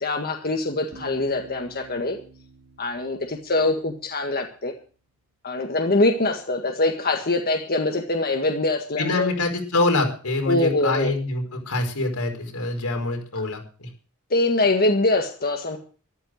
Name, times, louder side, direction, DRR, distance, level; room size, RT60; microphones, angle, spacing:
voice 1, 0.0-2.2 2.8-4.7 5.4-9.3 10.5-11.1 14.3-15.8, left 2 dB, 45° left, 4 dB, 1.8 m, -23 dB
Bass guitar, 0.9-4.6, right 4 dB, 60° right, 4.8 m, -48 dB
voice 2, 9.0-13.9, left 2 dB, 90° left, 3 dB, 5.1 m, -25 dB
14.0 x 12.5 x 6.4 m, 0.39 s
head